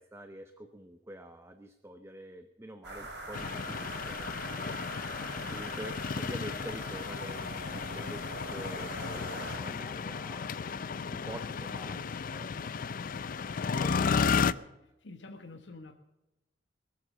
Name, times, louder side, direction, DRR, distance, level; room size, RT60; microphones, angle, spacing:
voice 1, 0.0-4.4 5.5-10.6 11.1-13.0 13.8-14.7, right 1 dB, 15° right, 8 dB, 0.8 m, -47 dB
sound 1, 2.8-9.6, right 2 dB, 65° right, 3.7 m, -43 dB
sound 2, 3.3-14.5, left 5 dB, 50° left, 0.4 m, -33 dB
voice 2, 15.0-15.9, left 2 dB, 90° left, 5 dB, 1.1 m, -48 dB
22.0 x 7.7 x 6.5 m, 0.99 s
head